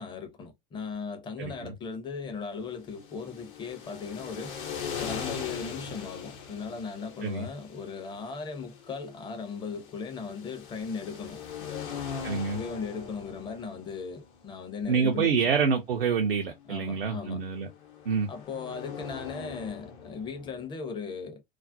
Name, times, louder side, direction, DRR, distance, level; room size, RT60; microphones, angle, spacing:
voice 1, 0.0-4.6 5.0-12.0 12.5-15.4 16.7-17.4 18.3-21.4, left 5 dB, 15° left, 0.5 m, -37 dB
voice 2, 1.4-1.7 7.2-7.5 12.2-12.6 14.9-17.7 18.1-18.3, right 5 dB, 75° right, 0.5 m, -27 dB
sound 1, 2.8-20.7, left 6 dB, 60° left, 0.8 m, -42 dB
2.4 x 2.0 x 2.5 m
figure-of-eight pair, 85°, 29 cm